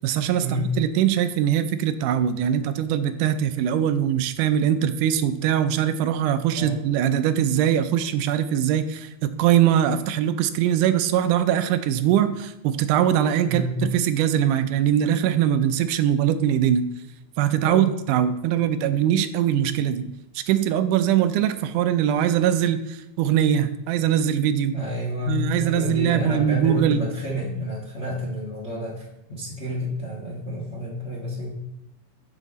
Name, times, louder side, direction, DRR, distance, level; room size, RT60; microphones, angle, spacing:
voice 1, 0.0-16.9 17.4-20.1 20.4-24.8 25.3-27.0, right 10 dB, 85° right, 10 dB, 2.1 m, -22 dB
voice 2, 13.4-13.8 17.6-17.8 24.7-31.5, left 1 dB, 40° left, -3 dB, 0.9 m, -30 dB
11.0 x 5.6 x 4.1 m, 0.85 s
omnidirectional pair, 3.6 m